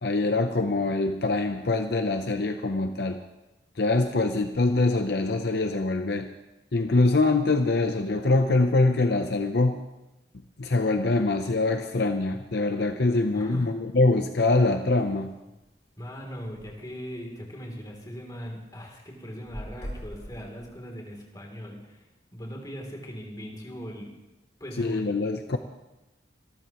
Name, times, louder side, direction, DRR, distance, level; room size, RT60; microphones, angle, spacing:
voice 1, 0.0-3.2 3.8-6.3 6.7-9.8 10.6-15.3 24.8-25.6, left 2 dB, 60° left, 6 dB, 0.7 m, -24 dB
voice 2, 13.3-13.7 16.0-22.0 22.3-24.2 24.6-25.1, equal, 20° left, 0 dB, 3.1 m, -39 dB
sound 1, 15.0-15.2 15.7-15.8 16.0-16.1 16.3-16.7 17.3-17.4 17.8-18.5 18.9-21.1, equal, 40° left, 5.5 m, -41 dB
25.5 x 13.0 x 3.1 m, 1.0 s
head